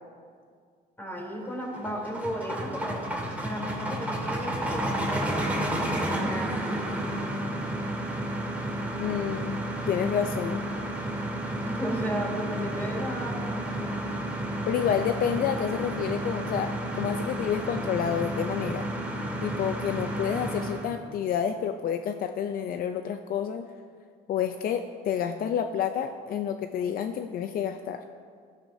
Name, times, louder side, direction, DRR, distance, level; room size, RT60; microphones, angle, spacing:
voice 1, 1.0-3.1 3.4-6.6 11.6-14.0, equal, 10° left, -2 dB, 3.5 m, -34 dB
sound 1, 1.5-20.9, right 1 dB, 10° right, 2.3 m, -31 dB
voice 2, 9.0-9.6 9.9-10.6 14.7-18.9 19.4-23.7 24.3-28.0, left 8 dB, 60° left, 7 dB, 0.6 m, -29 dB
18.0 x 12.5 x 2.8 m, 2.1 s
cardioid pair, 110°, 17 cm